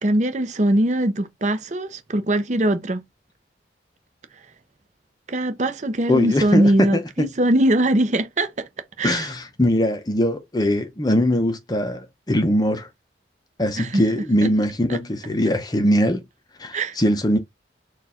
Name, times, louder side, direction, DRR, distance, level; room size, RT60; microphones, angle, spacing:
voice 1, 0.0-3.0 5.3-8.7 9.0-9.3 13.8-14.0 14.4-14.5 14.9-15.0 16.7-17.0, right 1 dB, 40° right, 0.6 m, -21 dB
voice 2, 6.1-7.3 9.0-12.9 13.6-16.2 16.6-17.4, equal, 20° left, 0.6 m, -21 dB
4.5 x 2.4 x 4.2 m
head